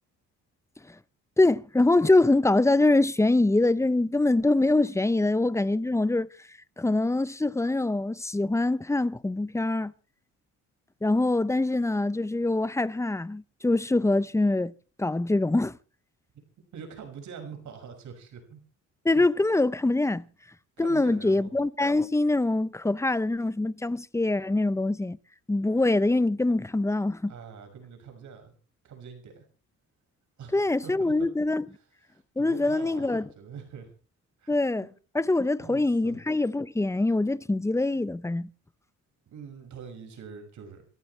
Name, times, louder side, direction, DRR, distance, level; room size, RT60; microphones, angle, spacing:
voice 1, 1.4-6.3 6.8-9.9 11.0-14.7 15.0-15.8 19.0-20.2 20.8-25.2 25.5-27.3 30.5-31.6 32.4-33.3 34.5-34.9 35.1-38.5, left 2 dB, 10° left, 0.7 m, -24 dB
voice 2, 16.7-18.6 20.8-21.5 27.3-28.5 28.8-29.4 30.4-31.3 31.8-31.9 32.1-33.9 34.4-34.9 35.6-36.2 39.3-40.9, right 6 dB, 70° right, 5.9 m, -44 dB
28.0 x 14.0 x 3.2 m
cardioid pair, 90°, 30 cm